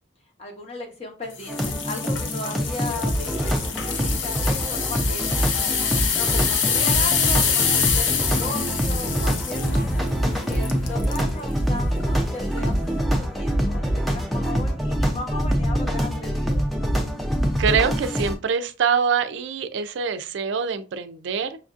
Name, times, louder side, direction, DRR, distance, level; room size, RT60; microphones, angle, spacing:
voice 1, 0.4-3.7 4.0-10.0 10.5-16.6, left 2 dB, 30° left, 0.9 m, -36 dB
sound 1, 1.4-11.3 11.8-12.0 12.6-12.7, left 6 dB, 75° left, 0.6 m, -26 dB
sound 2, 1.5-18.3, equal, ahead, 0.4 m, -25 dB
voice 2, 17.6-21.6, right 6 dB, 70° right, 0.4 m, -24 dB
5.7 x 2.5 x 2.4 m
head